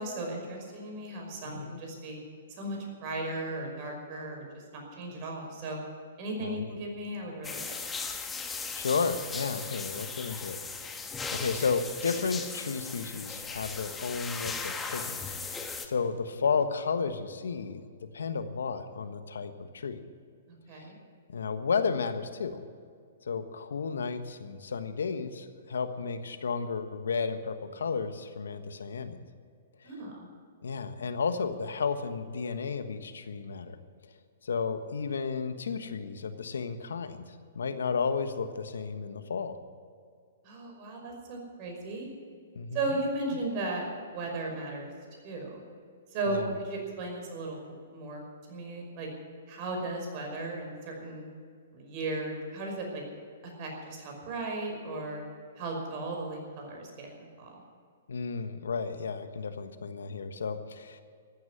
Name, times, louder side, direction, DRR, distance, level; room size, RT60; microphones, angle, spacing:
voice 1, 0.0-2.2 2.6-5.8 6.2-7.8 20.7-21.0 29.8-30.3 40.4-42.1 42.7-44.9 45.2-45.6 46.1-47.6 47.9-48.2 48.5-49.1 49.5-51.3 51.7-53.0 53.6-55.2 55.6-57.5, right 2 dB, 40° right, 1 dB, 5.6 m, -36 dB
voice 2, 1.4-1.8 6.4-6.7 8.5-11.0 11.3-15.2 15.5-17.8 18.1-20.0 20.8-20.9 21.3-22.6 23.3-29.2 30.6-33.8 34.4-37.2 37.5-39.6 42.5-42.8 46.3-46.5 58.1-61.0, left 5 dB, 80° left, 10 dB, 1.3 m, -33 dB
sound 1, 7.4-15.9, left 4 dB, 10° left, 1.3 m, -38 dB
14.5 x 9.8 x 10.0 m, 2.2 s
hypercardioid pair, 135°, 0 cm